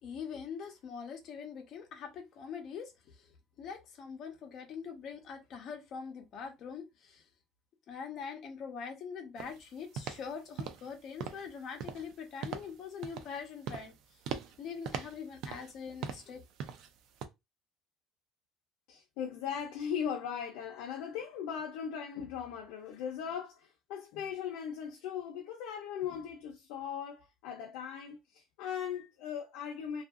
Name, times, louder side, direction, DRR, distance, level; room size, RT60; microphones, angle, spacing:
voice 1, 0.0-3.3 3.6-7.2 7.9-13.9 14.6-16.4, left 6 dB, 45° left, 0.8 m, -43 dB
sound 1, 9.4-9.6 10.0-10.3 10.6-10.9 11.2-11.5 11.8-12.1 12.4-12.7 13.0-13.4 13.7-13.9 14.3-14.6 14.9-15.8 16.0-16.3 16.6-16.9 17.2-17.3, right 7 dB, 55° right, 0.4 m, -40 dB
voice 2, 18.9-30.0, left 8 dB, 90° left, 0.5 m, -39 dB
2.7 x 2.5 x 2.4 m
cardioid pair, 165°, 0 cm